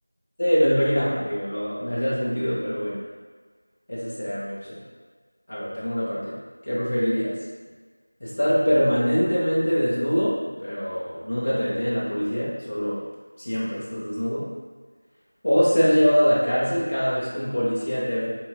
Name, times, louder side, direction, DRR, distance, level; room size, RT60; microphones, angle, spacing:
voice 1, 0.4-3.0 3.9-4.8 5.5-7.3 8.2-13.0 13.4-14.5 15.4-18.3, equal, 25° left, -8 dB, 0.7 m, -23 dB
3.5 x 3.0 x 3.1 m, 1.5 s
figure-of-eight pair, 175°, 0 cm